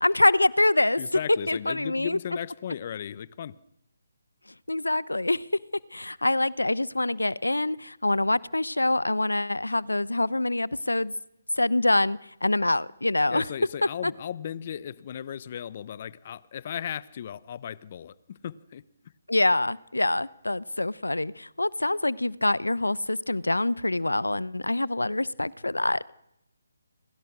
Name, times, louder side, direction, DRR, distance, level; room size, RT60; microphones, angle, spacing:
voice 1, 0.0-1.0 1.5-2.2 4.7-5.4 5.9-11.1 11.6-13.4 14.0-14.1 19.3-26.1, left 2 dB, 90° left, 0.9 m, -25 dB
voice 2, 1.0-3.6 13.3-18.8, left 9 dB, 40° left, 1.0 m, -36 dB
30.0 x 26.5 x 6.3 m
figure-of-eight pair, 150°, 0 cm